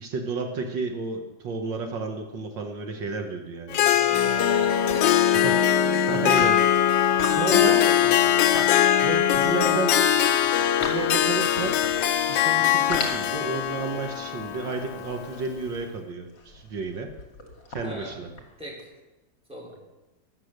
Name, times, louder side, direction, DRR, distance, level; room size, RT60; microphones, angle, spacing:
voice 1, 0.0-3.8 5.4-5.6 5.8-6.6 6.9-7.8 9.0-10.0 10.8-11.8 12.3-17.1 17.7-18.3, right 4 dB, 75° right, 4 dB, 2.0 m, -31 dB
Harp, 3.7-15.5, left 11 dB, 85° left, 1.5 m, -22 dB
voice 2, 4.0-5.6 7.0-8.5 17.8-18.2 18.6-18.9 19.5-19.8, equal, 5° right, -5 dB, 5.1 m, -39 dB
Wind instrument woodwind instrument, 4.1-10.2, right 1 dB, 50° left, 5.4 m, -33 dB
sound 1, 4.9-5.6 6.2-9.9 10.3-12.4 12.7-18.8, left 3 dB, 70° left, 3.3 m, -37 dB
22.0 x 8.0 x 6.6 m, 1.1 s
omnidirectional pair, 2.0 m